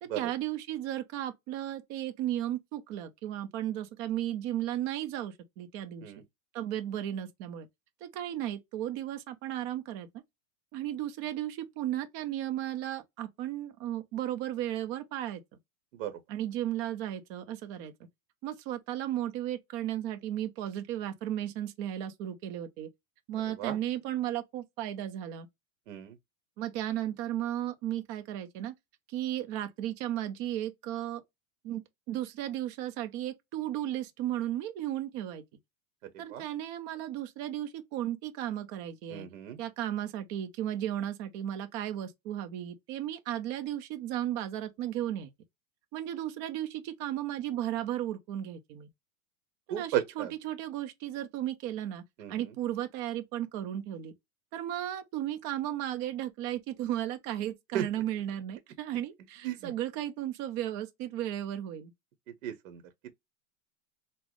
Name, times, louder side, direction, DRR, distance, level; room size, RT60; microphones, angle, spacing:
voice 1, 0.0-6.0 6.5-7.7 8.0-10.1 10.7-15.4 16.3-17.9 18.4-22.9 23.3-25.5 26.6-28.7 29.1-31.2 31.6-35.4 36.2-39.3 39.6-45.3 45.9-48.9 49.7-52.0 52.3-54.1 54.5-61.9, right 12 dB, 30° right, 0.5 m, -35 dB
voice 2, 39.1-39.6 49.7-50.3 52.2-52.3 57.7-57.8 59.4-59.7 62.4-62.8, right 11 dB, 65° right, 0.8 m, -34 dB
3.8 x 2.0 x 3.0 m
supercardioid pair, 155°, 42 cm